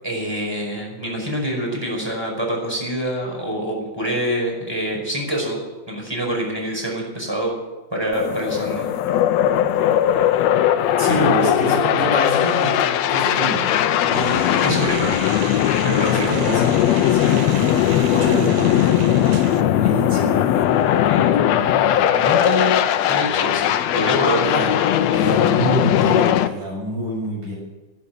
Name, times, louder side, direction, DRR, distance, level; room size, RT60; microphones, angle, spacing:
voice 1, 0.0-5.6 5.9-7.5 7.9-8.9 11.1-11.7 14.6-15.2 15.8-16.3 21.0-24.5, equal, 5° right, 0 dB, 4.9 m, -26 dB
sound 1, 8.1-26.5, left 11 dB, 70° left, 1.8 m, -19 dB
voice 2, 11.0-12.8 13.1-13.7 14.0-15.0 16.1-16.8 17.1-19.2 19.8-21.0 24.4-24.7 25.1-27.6, right 1 dB, 85° right, -3 dB, 8.7 m, -27 dB
sound 2, 14.1-19.6, right 7 dB, 65° right, 2.2 m, -35 dB
13.0 x 11.5 x 9.3 m, 1.2 s
omnidirectional pair, 3.5 m